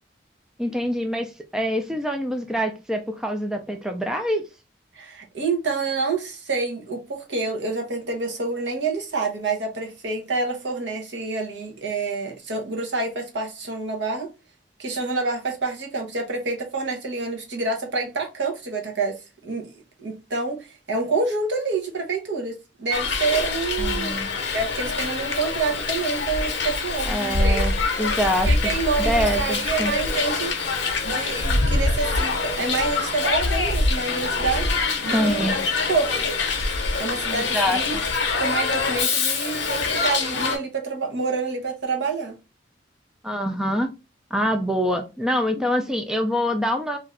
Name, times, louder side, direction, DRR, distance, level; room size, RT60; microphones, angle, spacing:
voice 1, 0.6-4.4 23.8-24.3 27.0-28.5 29.0-29.9 35.1-35.6 37.3-38.0 43.2-43.9 44.3-47.0, equal, 5° right, 0.3 m, -25 dB
voice 2, 4.9-14.3 14.8-19.2 19.4-19.7 20.0-24.2 24.5-27.7 28.5-30.5 31.0-34.7 35.0-35.5 35.9-36.1 37.0-38.0 38.4-42.4, right 4 dB, 70° right, 0.8 m, -27 dB
Hiss, 22.9-40.6, left 3 dB, 75° left, 0.7 m, -24 dB
2.6 x 2.4 x 3.1 m
head